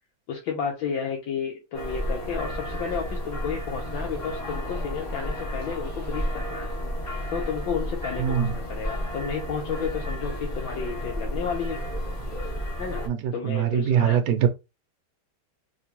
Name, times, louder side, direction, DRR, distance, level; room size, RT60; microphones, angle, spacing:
voice 1, 0.3-6.7 7.3-11.8 12.8-13.0 13.3-14.2, left 6 dB, 70° left, 1.4 m, -32 dB
sound 1, 1.7-13.1, equal, 50° left, 0.5 m, -32 dB
voice 2, 8.2-8.5 13.1-14.5, right 9 dB, 75° right, 1.0 m, -23 dB
3.7 x 2.9 x 2.8 m
omnidirectional pair, 2.3 m